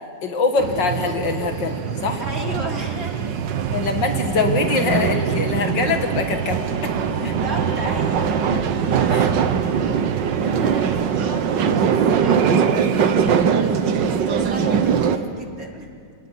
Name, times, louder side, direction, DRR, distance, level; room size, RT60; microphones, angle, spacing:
voice 1, 0.2-2.2 3.7-6.9 7.2-7.3 9.1-9.4 14.0-14.1, left 4 dB, 70° left, 5 dB, 2.6 m, -23 dB
sound 1, 0.6-15.2, right 7 dB, 70° right, 1.8 m, -21 dB
voice 2, 2.2-3.3 7.0-8.5 8.8-9.1 9.8-15.9, right 1 dB, 45° right, 0 dB, 3.5 m, -35 dB
29.5 x 19.0 x 9.4 m, 2.3 s
omnidirectional pair, 2.1 m